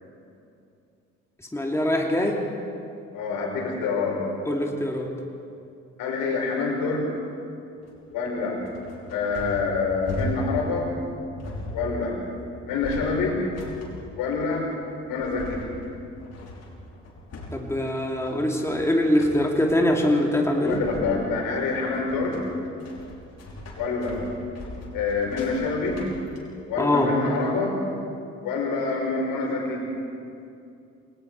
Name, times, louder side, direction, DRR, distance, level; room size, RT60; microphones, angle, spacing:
voice 1, 1.5-2.4 4.4-5.1 17.5-21.3 26.8-27.1, left 1 dB, 5° left, 0 dB, 2.9 m, -23 dB
voice 2, 3.1-4.2 6.0-7.1 8.1-8.6 9.1-10.9 11.7-12.2 12.7-13.4 14.2-14.7 15.1-15.6 20.6-22.4 23.8-24.2 24.9-26.0 26.7-27.8 28.4-29.8, left 4 dB, 65° left, 0 dB, 5.1 m, -26 dB
sound 1, 7.8-26.4, equal, 45° left, 5.8 m, -38 dB
28.5 x 19.5 x 4.8 m, 2.5 s
hypercardioid pair, 50°, 36 cm